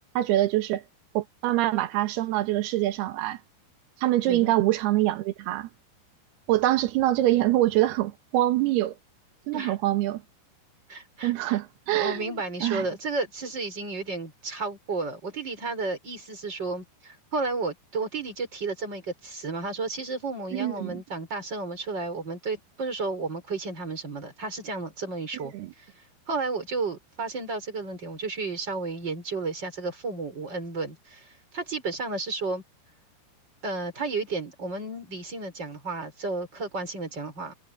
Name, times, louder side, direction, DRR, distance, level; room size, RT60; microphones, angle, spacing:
voice 1, 0.2-0.8 1.1-3.4 4.0-5.7 6.5-8.9 9.5-10.2 11.2-12.3 12.6-12.9 20.5-21.0 25.3-25.7, right 15 dB, 70° right, 2.9 m, -25 dB
voice 2, 10.9-11.6 11.9-32.6 33.6-37.5, right 3 dB, 25° right, 6.2 m, -32 dB
omnidirectional pair, 5.2 m